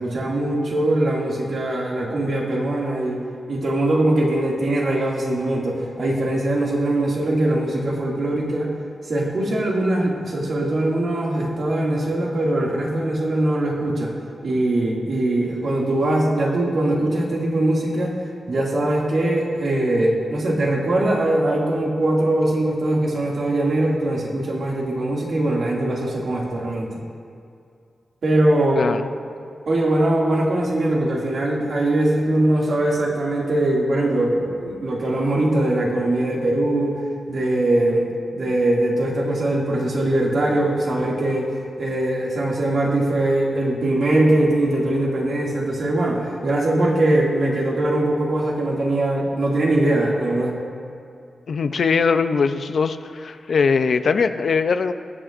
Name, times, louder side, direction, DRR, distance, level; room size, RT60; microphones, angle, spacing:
voice 1, 0.0-3.2 3.5-8.7 9.0-14.1 14.4-18.1 18.5-26.9 28.2-28.8 29.7-36.9 37.3-50.6, right 1 dB, 60° right, -3 dB, 2.3 m, -21 dB
voice 2, 28.8-29.1 51.5-54.9, left 5 dB, 65° left, 10 dB, 0.5 m, -21 dB
22.5 x 8.7 x 2.5 m, 2.4 s
wide cardioid pair, 140°, 0 cm